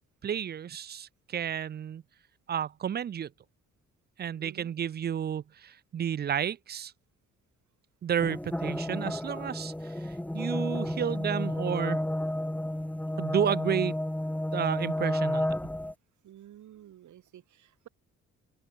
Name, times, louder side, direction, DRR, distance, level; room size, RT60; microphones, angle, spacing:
voice 1, 0.2-2.0 2.5-3.3 4.2-6.9 8.0-12.0 13.2-13.9 14.5-15.5, right 9 dB, 35° right, 0.4 m, -31 dB
sound 1, 8.2-15.9, left 1 dB, 5° left, 1.7 m, -31 dB
voice 2, 16.2-17.9, right 12 dB, 75° right, 6.0 m, -51 dB
cardioid pair, 90°, 30 cm